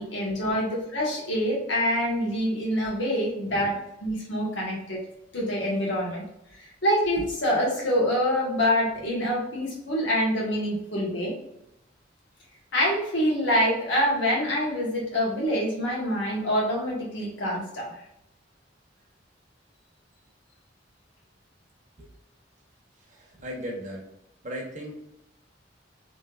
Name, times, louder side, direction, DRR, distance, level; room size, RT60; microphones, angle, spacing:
voice 1, 0.0-3.7 4.0-5.0 5.3-6.2 6.8-11.3 12.7-17.9, equal, 85° left, -3 dB, 1.4 m, -26 dB
voice 2, 23.0-24.1 24.4-25.0, equal, 45° right, -2 dB, 1.0 m, -37 dB
3.3 x 3.2 x 2.4 m, 0.82 s
head